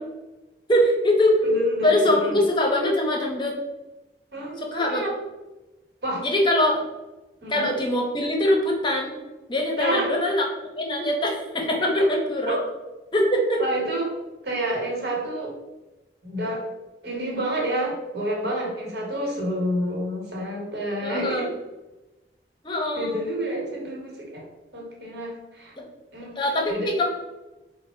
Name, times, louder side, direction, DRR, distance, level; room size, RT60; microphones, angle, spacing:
voice 1, 0.7-1.4 1.8-3.6 4.7-5.0 6.2-6.9 7.5-9.2 9.5-10.4 10.8-12.6 13.1-13.6 21.0-21.5 22.6-23.2 25.8-25.9 26.4-27.1, left 1 dB, 25° left, 0 dB, 0.6 m, -22 dB
voice 2, 1.4-2.4 4.3-5.2 6.0-6.3 7.4-7.7 9.8-10.2 12.0-12.1 12.5-12.6 13.6-14.2 14.4-15.6 16.2-16.6 17.0-21.5 22.9-24.5 24.7-25.7 26.1-26.4 26.7-26.9, right 1 dB, 70° right, -2 dB, 1.1 m, -29 dB
3.7 x 2.0 x 4.3 m, 1.1 s
head